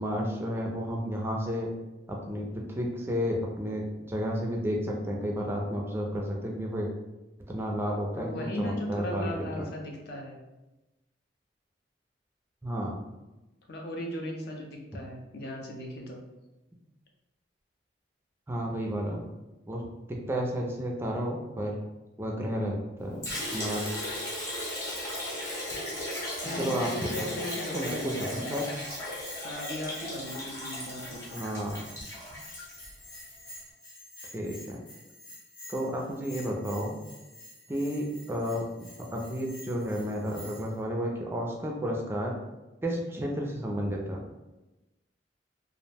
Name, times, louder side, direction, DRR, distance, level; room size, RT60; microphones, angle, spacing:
voice 1, 0.0-1.7 2.1-6.9 7.5-9.3 9.6-9.7 12.6-13.0 18.5-19.3 19.7-21.8 22.2-23.9 26.5-26.9 27.7-28.7 31.3-31.8 34.3-34.8 35.7-37.0 37.7-42.3 42.8-44.2, equal, 15° right, -1 dB, 0.3 m, -32 dB
voice 2, 8.1-10.4 13.7-16.2 26.4-28.5 29.3-31.4, left 1 dB, 60° left, 1 dB, 0.5 m, -37 dB
Liquid, 23.2-33.3, left 1 dB, 20° left, 0.9 m, -36 dB
Bell, 27.0-40.8, left 1 dB, 80° left, 1.0 m, -48 dB
2.4 x 2.0 x 3.3 m, 1.0 s
head